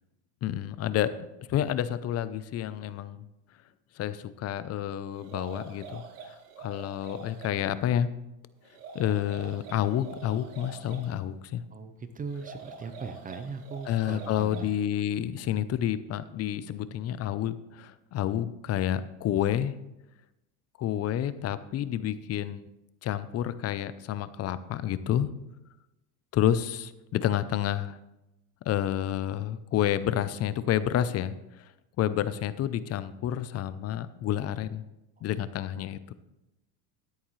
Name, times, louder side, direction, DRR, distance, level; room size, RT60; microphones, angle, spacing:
voice 1, 0.4-1.2 1.5-3.3 4.0-8.1 8.9-11.6 13.9-19.7 20.8-22.6 23.0-25.3 26.3-28.0 28.7-31.7 32.0-34.9 35.2-36.1, left 11 dB, 35° left, 14 dB, 0.5 m, -29 dB
sound 1, 5.1-7.6 8.6-11.1 12.3-14.8, right 5 dB, 90° right, 2.2 m, -45 dB
voice 2, 11.7-14.6, right 5 dB, 20° right, 9 dB, 0.6 m, -39 dB
13.0 x 9.9 x 3.2 m, 0.93 s
supercardioid pair, 130°, 45 cm